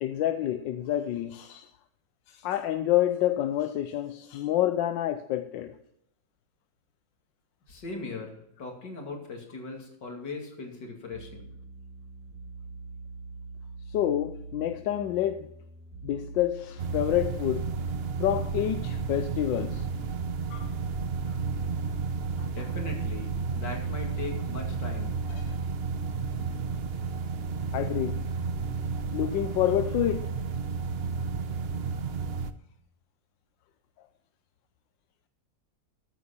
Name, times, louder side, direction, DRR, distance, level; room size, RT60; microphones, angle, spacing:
voice 1, 0.0-1.7 2.3-5.8 13.9-15.5 16.0-17.7 18.2-19.9 20.5-20.7 21.3-21.4 22.4-22.5 25.3-25.6 27.7-28.2 29.1-30.3, left 12 dB, 80° left, 1.4 m, -28 dB
voice 2, 7.7-11.6 22.5-25.2, left 3 dB, 65° left, 3.1 m, -39 dB
sound 1, 11.1-20.7, right 2 dB, 55° right, 2.3 m, -46 dB
sound 2, 16.8-32.5, right 4 dB, 70° right, 0.5 m, -32 dB
13.5 x 9.2 x 4.3 m
omnidirectional pair, 2.0 m